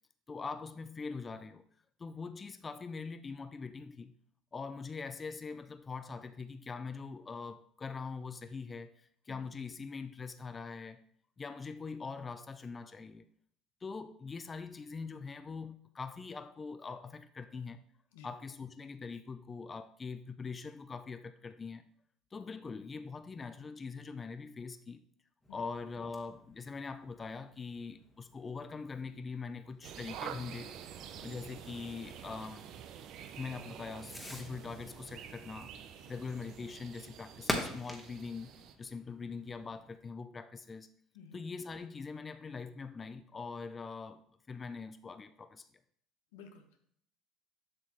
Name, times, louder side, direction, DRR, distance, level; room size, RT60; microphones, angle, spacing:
voice 1, 0.3-1.6 2.0-4.1 4.5-11.0 11.4-13.3 13.8-17.8 18.2-21.8 22.3-25.0 25.5-30.8 31.2-32.7 33.3-35.7 36.1-40.9 41.3-44.2 44.5-45.7, left 4 dB, 30° left, 0.4 m, -43 dB
Fireworks, 25.4-40.0, left 1 dB, 10° left, 1.4 m, -47 dB
sound 1, 29.8-38.7, right 9 dB, 65° right, 0.5 m, -48 dB
voice 2, 46.3-46.8, left 5 dB, 85° left, 1.0 m, -54 dB
7.6 x 6.1 x 3.0 m
supercardioid pair, 80°, 0 cm